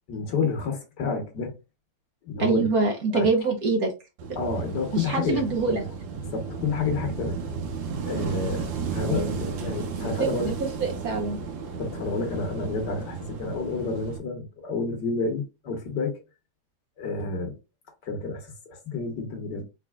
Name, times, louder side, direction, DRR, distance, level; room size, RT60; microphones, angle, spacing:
voice 1, 0.1-1.5 2.2-2.7 3.1-3.3 4.4-5.4 5.7-5.9 6.2-7.5 8.0-10.5 11.8-16.2 17.0-17.5 18.0-19.7, left 4 dB, 65° left, 1.7 m, -29 dB
voice 2, 2.4-3.9 4.9-5.8 9.1-9.4 10.0-11.4, right 4 dB, 60° right, 1.2 m, -25 dB
Wind / Waves surf, 4.2-14.2, right 5 dB, 80° right, 1.6 m, -34 dB
4.3 x 3.9 x 2.4 m
omnidirectional pair, 2.1 m